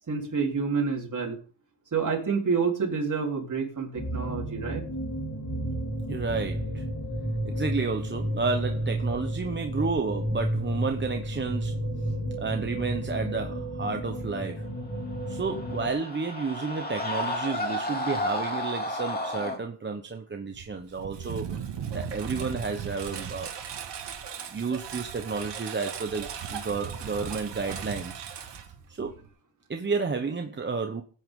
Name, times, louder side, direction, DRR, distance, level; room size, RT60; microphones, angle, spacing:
voice 1, 0.1-1.4 1.9-4.8, right 5 dB, 40° right, 3.7 m, -28 dB
sound 1, 3.9-15.9, right 1 dB, 45° left, 3.9 m, -32 dB
voice 2, 6.1-6.8 7.4-11.8 12.4-14.6 15.3-21.5 21.9-23.5 24.5-28.2 28.9-29.1 29.7-31.0, right 4 dB, 25° right, 1.0 m, -31 dB
Screaming, 15.1-19.6, left 1 dB, 20° left, 2.6 m, -32 dB
Engine, 20.5-29.3, right 7 dB, 60° right, 2.0 m, -37 dB
15.0 x 9.3 x 3.8 m
cardioid pair, 105°, 46 cm